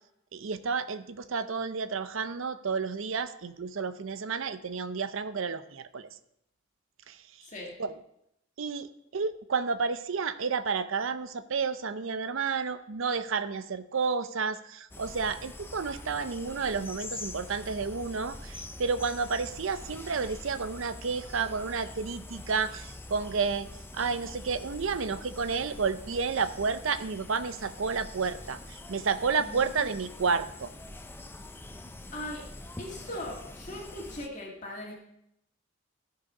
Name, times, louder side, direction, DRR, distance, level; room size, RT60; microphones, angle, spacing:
voice 1, 0.3-6.1 7.1-7.2 7.8-7.9 8.6-23.7 23.9-30.7, right 5 dB, 70° right, 12 dB, 0.6 m, -31 dB
voice 2, 7.4-7.7 29.4-29.9 32.1-32.5 32.8-34.9, left 1 dB, 35° left, -2 dB, 1.8 m, -39 dB
sound 1, 14.9-34.3, left 2 dB, 10° left, 0.5 m, -44 dB
14.0 x 4.8 x 5.4 m, 0.79 s
head